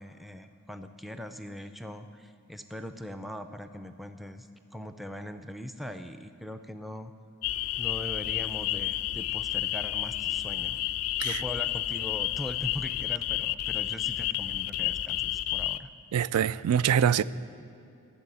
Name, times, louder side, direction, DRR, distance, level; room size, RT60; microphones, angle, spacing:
voice 1, 0.0-7.1 7.8-10.8 11.2-15.9, left 1 dB, ahead, 0.4 m, -41 dB
sound 1, 7.4-15.8, left 14 dB, 70° left, 0.4 m, -31 dB
voice 2, 16.1-17.2, right 8 dB, 90° right, 0.3 m, -24 dB
11.5 x 7.7 x 9.7 m
head